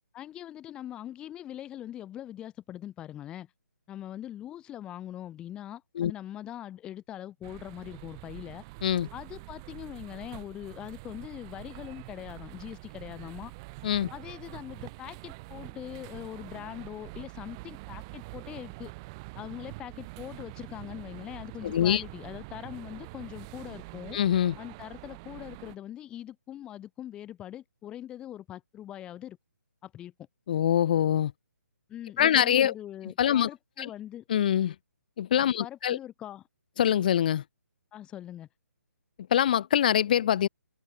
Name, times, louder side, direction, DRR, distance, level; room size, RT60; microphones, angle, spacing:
voice 1, 0.1-3.5 3.9-8.6 9.1-13.5 14.1-18.9 19.3-24.2 24.6-29.4 29.8-30.1 31.9-34.2 35.6-36.4 37.9-38.5, left 12 dB, 10° left, 1.4 m, -42 dB
sound 1, 7.4-25.8, right 27 dB, 15° right, 0.8 m, -45 dB
voice 2, 21.6-22.0 24.1-24.5 30.5-31.3 32.2-32.7 33.2-33.5 33.8-33.9 34.3-34.7 35.2-36.0 36.8-37.4 39.3-40.5, left 10 dB, 30° left, 0.5 m, -24 dB
hypercardioid pair, 165°, 9 cm